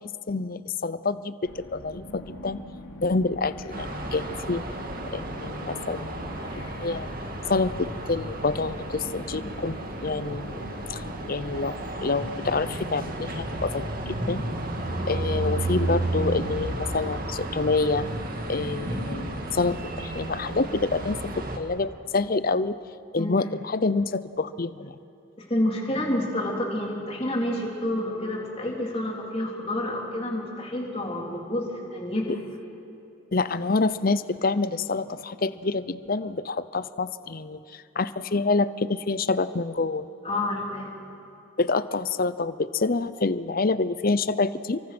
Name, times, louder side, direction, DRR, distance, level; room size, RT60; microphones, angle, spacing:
voice 1, 0.3-2.6 3.0-4.6 5.1-7.1 7.5-11.0 11.3-13.9 14.3-14.4 15.1-18.1 18.5-22.8 23.1-24.9 33.3-37.6 38.0-40.0 41.6-44.8, left 3 dB, 45° left, 15 dB, 0.6 m, -27 dB
sound 1, 1.5-20.7, left 1 dB, 85° left, 2.7 m, -44 dB
sound 2, 3.7-21.6, right 1 dB, 40° right, 2.1 m, -33 dB
voice 2, 25.5-32.7 40.2-41.1, left 1 dB, 25° left, -1 dB, 3.7 m, -29 dB
29.5 x 24.0 x 6.2 m, 2.7 s
head